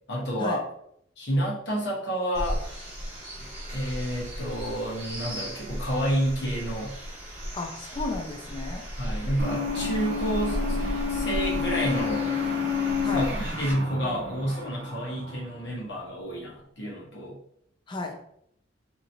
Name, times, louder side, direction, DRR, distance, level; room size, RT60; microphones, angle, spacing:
voice 1, 0.1-0.6 1.2-2.8 3.4-6.9 9.0-10.8 11.1-12.4 13.1-17.4, equal, 60° left, -4 dB, 0.9 m, -30 dB
sound 1, 2.3-13.7, equal, 35° right, 1.3 m, -35 dB
voice 2, 7.5-8.8 13.0-13.3 17.9-18.1, left 3 dB, 25° left, 3 dB, 0.4 m, -33 dB
sound 2, 9.4-15.8, left 5 dB, 60° right, 0.7 m, -30 dB
2.8 x 2.8 x 2.6 m, 0.72 s
head